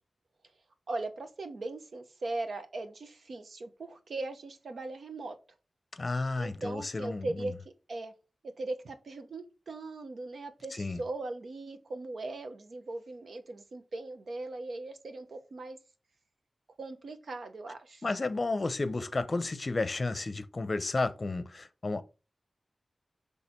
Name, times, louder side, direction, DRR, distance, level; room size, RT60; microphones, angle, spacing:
voice 1, 0.9-5.4 6.4-7.5 7.9-8.1 8.6-15.8 16.8-18.1, right 2 dB, 75° right, 0.9 m, -39 dB
voice 2, 6.0-7.5 10.8-11.0 18.0-22.0, left 3 dB, 45° left, 0.6 m, -32 dB
6.2 x 3.4 x 4.4 m
wide cardioid pair, 85°, 0 cm